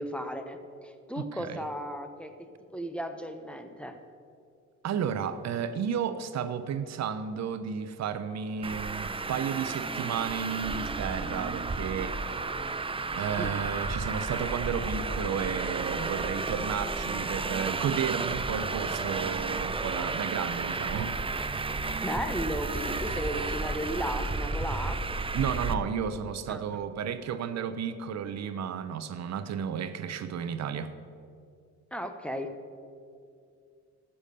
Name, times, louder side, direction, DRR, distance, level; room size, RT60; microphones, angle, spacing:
voice 1, 0.0-2.3 2.7-3.9 13.4-13.5 22.0-25.0 26.5-26.6 31.9-32.5, equal, 5° left, 7 dB, 0.9 m, -35 dB
voice 2, 1.2-1.6 4.8-12.2 13.1-21.2 25.3-30.9, right 7 dB, 60° right, 11 dB, 0.7 m, -33 dB
Traffic noise roadway noise, 8.6-25.7, right 3 dB, 20° right, 0.6 m, -32 dB
13.0 x 7.0 x 6.7 m, 2.4 s
cardioid pair, 90°, 30 cm